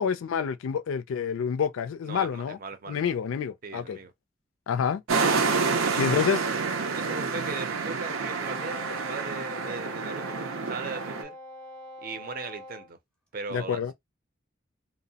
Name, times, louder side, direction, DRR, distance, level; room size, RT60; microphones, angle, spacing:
voice 1, 0.0-2.6 2.9-4.0 4.7-5.0 6.0-6.4 13.5-13.9, left 7 dB, 90° left, 0.4 m, -28 dB
voice 2, 2.0-3.2 3.6-4.1 5.8-6.1 6.9-11.4 12.0-13.0 13.3-13.9, right 4 dB, 45° right, 0.5 m, -38 dB
sound 1, 5.1-11.2, right 4 dB, 90° right, 0.6 m, -28 dB
Wind instrument woodwind instrument, 8.4-12.9, left 2 dB, 5° left, 0.7 m, -44 dB
2.7 x 2.0 x 2.7 m
head